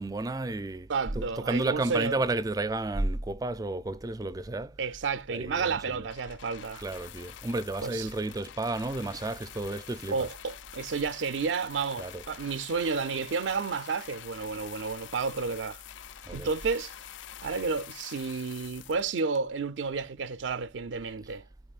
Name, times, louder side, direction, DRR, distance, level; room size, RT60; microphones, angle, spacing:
voice 1, 0.0-0.9 1.2-4.8 5.3-6.1 6.8-10.3 12.0-12.2 16.2-16.5, right 2 dB, 20° right, 0.4 m, -32 dB
voice 2, 0.9-2.2 4.8-6.8 7.8-8.1 10.1-15.8 16.3-16.9 17.4-21.4, right 5 dB, 80° right, 0.5 m, -31 dB
sound 1, 6.1-19.8 20.5-20.6, left 11 dB, 80° left, 0.4 m, -47 dB
12.5 x 4.7 x 2.4 m
head